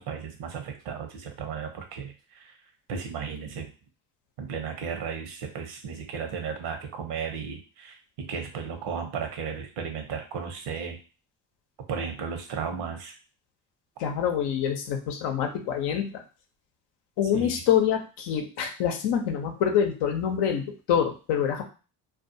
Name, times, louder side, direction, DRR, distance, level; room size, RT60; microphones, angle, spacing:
voice 1, 0.0-2.6 2.9-3.7 4.4-11.0 11.9-13.1 17.3-17.6, right 6 dB, 70° right, 5 dB, 0.8 m, -35 dB
voice 2, 14.0-16.2 17.2-21.6, left 8 dB, 75° left, 4 dB, 0.7 m, -26 dB
2.4 x 2.3 x 2.6 m, 0.34 s
supercardioid pair, 70°, 42 cm